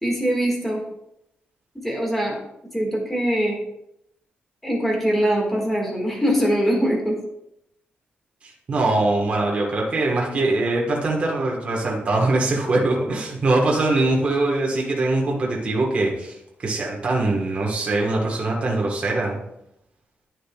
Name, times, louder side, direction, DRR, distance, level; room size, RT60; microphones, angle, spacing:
voice 1, 0.0-0.8 1.7-2.4 2.7-3.6 4.6-7.2, equal, 5° left, -2 dB, 1.7 m, -22 dB
voice 2, 8.4-19.4, right 2 dB, 35° right, -2 dB, 1.3 m, -22 dB
9.9 x 6.3 x 2.3 m, 0.80 s
wide cardioid pair, 155°, 4 cm